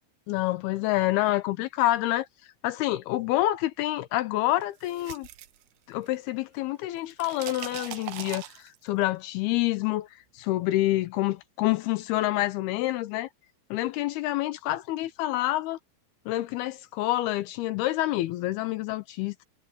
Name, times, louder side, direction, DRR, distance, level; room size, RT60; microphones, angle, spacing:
voice 1, 0.3-2.3 2.6-5.3 5.9-13.3 13.7-15.8 16.3-19.5, left 16 dB, 80° left, 2.4 m, -27 dB
sound 1, 4.6-6.3 6.6-9.0, right 14 dB, 75° right, 2.8 m, -41 dB
omnidirectional pair, 5.0 m